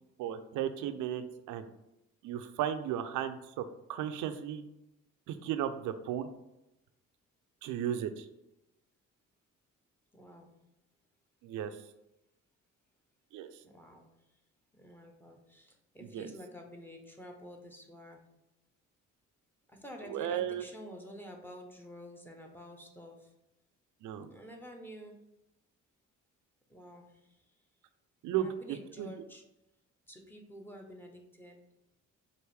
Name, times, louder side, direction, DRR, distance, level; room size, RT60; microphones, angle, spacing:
voice 1, 0.2-1.7 2.2-3.6 3.9-4.6 5.3-6.3 7.6-8.3 11.4-11.8 13.3-13.5 16.1-16.3 20.1-20.6 24.0-24.3 28.2-29.1, right 10 dB, 85° right, 9 dB, 0.5 m, -35 dB
voice 2, 10.1-10.6 13.6-14.1 14.7-18.2 19.7-23.3 24.3-25.2 26.7-27.4 28.3-29.4 30.1-31.6, equal, 5° left, 2 dB, 0.8 m, -49 dB
4.6 x 2.6 x 3.4 m, 0.91 s
cardioid pair, 90°, 30 cm